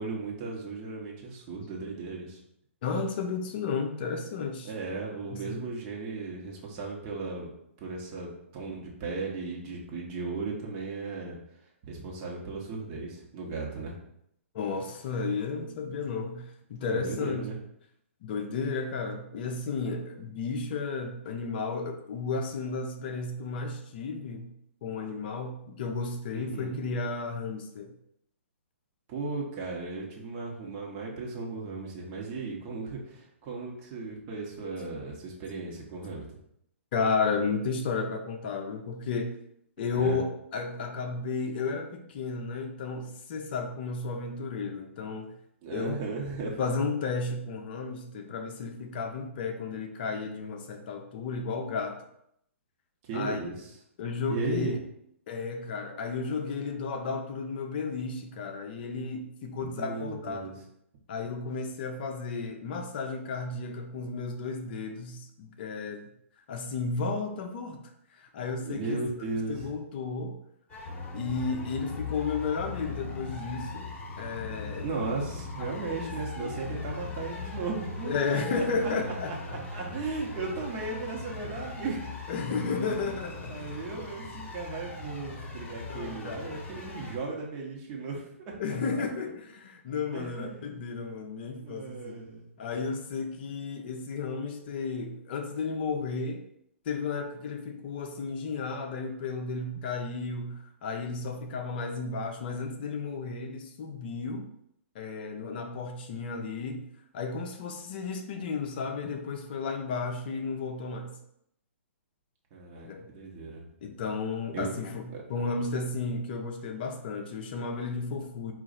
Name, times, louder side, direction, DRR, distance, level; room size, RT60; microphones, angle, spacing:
voice 1, 0.0-2.4 4.6-7.5 7.8-11.4 11.8-14.0 16.8-17.6 26.3-26.8 29.1-36.2 39.9-40.2 45.6-46.6 53.0-53.6 54.3-54.8 59.6-60.5 68.6-69.7 74.8-82.1 82.8-88.8 90.1-90.8 91.6-92.5 112.5-113.6 114.5-114.7 115.1-115.2, right 4 dB, 35° right, -1 dB, 1.1 m, -36 dB
voice 2, 2.8-4.7 5.3-5.6 14.5-16.4 16.7-17.5 18.2-24.5 24.8-27.9 36.9-39.3 39.8-40.2 40.5-45.3 45.7-46.0 46.6-52.0 53.1-53.4 54.0-54.8 55.3-60.5 61.1-66.0 66.5-67.8 68.1-69.0 69.5-70.4 71.1-73.9 74.2-74.9 75.9-76.1 76.4-76.5 78.1-79.6 82.3-83.6 85.9-86.6 88.6-92.1 92.6-96.4 96.9-104.5 104.9-106.8 107.1-111.1 112.8-113.1 113.8-115.0 115.3-118.5, left 4 dB, 45° left, 4 dB, 0.6 m, -33 dB
sound 1, 70.7-87.2, left 3 dB, 20° left, 1.1 m, -39 dB
4.7 x 2.5 x 4.0 m, 0.74 s
figure-of-eight pair, 120°, 7 cm